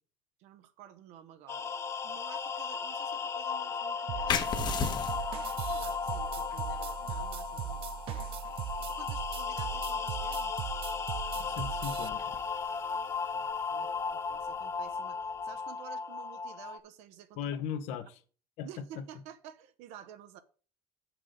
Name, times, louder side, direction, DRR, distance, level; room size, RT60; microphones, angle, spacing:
voice 1, 0.4-1.7 2.0-4.9 5.7-8.4 8.9-10.5 12.9-17.5 18.6-20.4, right 10 dB, 80° right, 0.8 m, -52 dB
sound 1, 1.5-16.8, left 5 dB, 25° left, 0.5 m, -36 dB
sound 2, 4.1-12.1, right 12 dB, 55° right, 0.5 m, -39 dB
sound 3, 4.3-15.5, left 7 dB, 40° left, 0.9 m, -41 dB
voice 2, 11.4-12.3 17.4-18.2 18.6-18.7 19.0-19.1, left 8 dB, 80° left, 1.0 m, -37 dB
7.8 x 6.1 x 5.1 m
cardioid pair, 145°, 11 cm